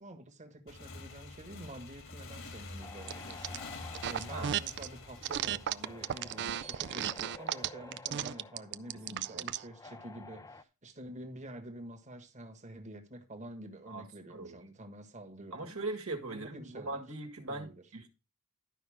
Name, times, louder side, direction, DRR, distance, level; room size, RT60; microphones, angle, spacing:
voice 1, 0.0-15.8 16.3-17.0 17.5-17.9, right 1 dB, 35° right, 1.5 m, -48 dB
Motorcycle / Engine, 0.7-7.0, left 3 dB, 60° left, 1.8 m, -47 dB
sound 1, 2.8-10.6, left 3 dB, 15° left, 0.5 m, -52 dB
sound 2, 3.1-3.6 3.9-4.9 5.2-9.6, right 10 dB, 55° right, 0.4 m, -34 dB
voice 2, 9.1-9.4 13.9-14.6 15.5-18.1, right 2 dB, 70° right, 1.7 m, -40 dB
11.5 x 5.4 x 4.9 m
head